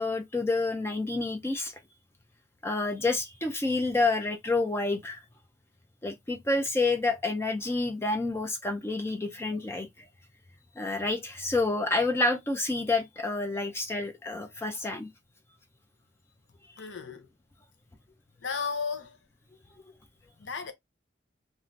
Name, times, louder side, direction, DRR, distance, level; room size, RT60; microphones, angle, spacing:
voice 1, 0.0-1.7 2.6-5.2 6.0-9.9 10.8-15.1, left 3 dB, 15° left, 0.3 m, -28 dB
voice 2, 16.8-17.3 18.4-19.2 20.4-20.7, left 5 dB, 75° left, 0.6 m, -34 dB
3.1 x 2.4 x 2.5 m
head